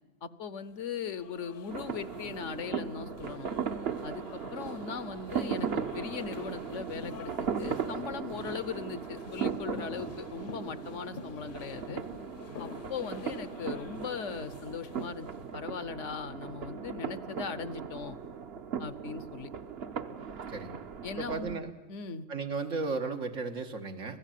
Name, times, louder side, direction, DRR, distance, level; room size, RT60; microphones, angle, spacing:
voice 1, 0.2-3.5 4.0-12.0 12.6-15.3 15.5-18.2 18.8-19.5 21.0-21.6 21.9-22.3, left 6 dB, 70° left, 15 dB, 1.2 m, -39 dB
sound 1, 0.8-15.5, left 5 dB, 45° left, 0.9 m, -49 dB
sound 2, 1.7-21.6, right 7 dB, 55° right, 1.1 m, -38 dB
voice 2, 21.2-21.7 22.3-24.2, right 4 dB, 80° right, 5 dB, 1.9 m, -34 dB
26.0 x 16.5 x 9.2 m, 1.3 s
omnidirectional pair, 1.3 m